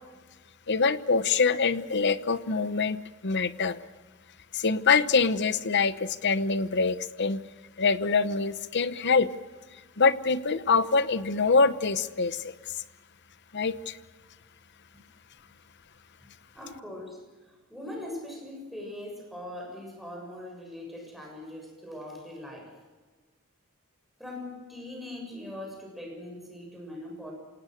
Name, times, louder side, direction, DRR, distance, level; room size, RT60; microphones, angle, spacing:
voice 1, 0.7-3.0 3.2-3.8 4.5-7.4 7.8-9.3 10.0-12.5 13.5-14.0, left 4 dB, 55° left, 14 dB, 1.0 m, -24 dB
voice 2, 16.5-22.8 24.2-27.3, left 1 dB, ahead, 1 dB, 6.9 m, -41 dB
27.5 x 18.5 x 6.6 m, 1.4 s
head